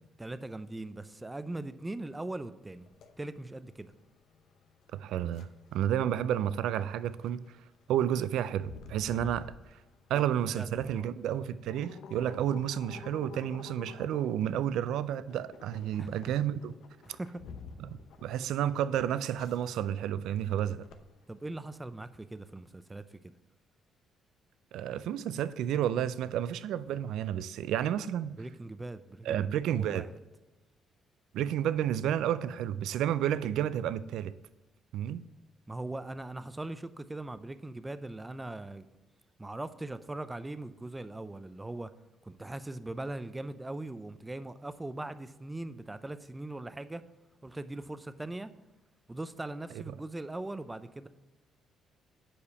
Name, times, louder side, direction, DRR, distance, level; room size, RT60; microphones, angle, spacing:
voice 1, 0.2-2.9 3.2-3.9 10.1-10.2 10.6-11.1 16.0-16.2 17.0-17.4 21.3-23.3 28.4-30.1 35.7-38.9 39.4-41.9 42.2-47.0 47.4-48.5 49.1-51.1, right 2 dB, 15° right, 0.5 m, -40 dB
sound 1, 2.8-21.6, left 6 dB, 75° left, 0.7 m, -51 dB
voice 2, 4.9-7.5 7.9-9.8 10.1-16.7 17.8-20.8 24.7-28.4 29.2-30.1 31.3-34.3 34.9-35.3, right 10 dB, 80° right, 0.3 m, -31 dB
7.1 x 5.0 x 5.7 m
supercardioid pair, 70°, 0 cm